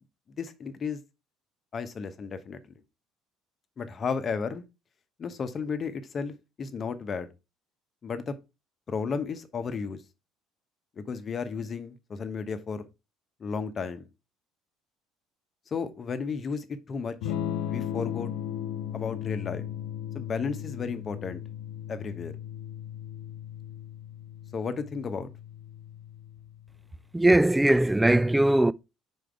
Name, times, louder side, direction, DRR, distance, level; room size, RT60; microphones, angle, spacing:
voice 1, 0.4-1.0 1.7-2.6 3.8-4.6 5.2-7.3 8.0-8.3 8.9-10.0 11.0-12.8 13.4-14.1 15.7-17.3 17.7-18.3 18.9-19.7 20.1-21.4 21.9-22.3 24.5-25.3, left 5 dB, 40° left, 1.0 m, -33 dB
Electric guitar / Strum, 17.2-27.0, left 10 dB, 70° left, 0.5 m, -37 dB
voice 2, 27.1-28.7, right 1 dB, 10° right, 0.3 m, -20 dB
5.0 x 4.5 x 4.6 m
hypercardioid pair, 60°, 0 cm